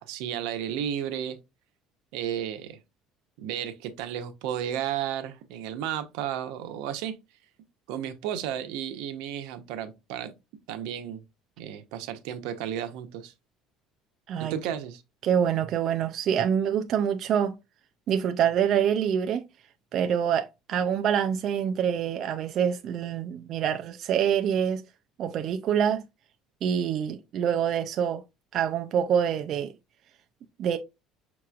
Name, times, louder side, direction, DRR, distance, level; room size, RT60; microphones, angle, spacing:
voice 1, 0.0-1.4 2.1-2.8 3.4-7.1 7.9-10.3 10.7-11.2 11.6-13.3 14.4-15.0, right 10 dB, 85° right, 0.7 m, -33 dB
voice 2, 15.2-17.5 18.1-19.4 19.9-24.8 25.2-26.0 26.6-28.2 28.5-29.7 30.6-30.8, right 8 dB, 45° right, 0.4 m, -26 dB
5.9 x 3.0 x 2.3 m
cardioid pair, 145°, 0 cm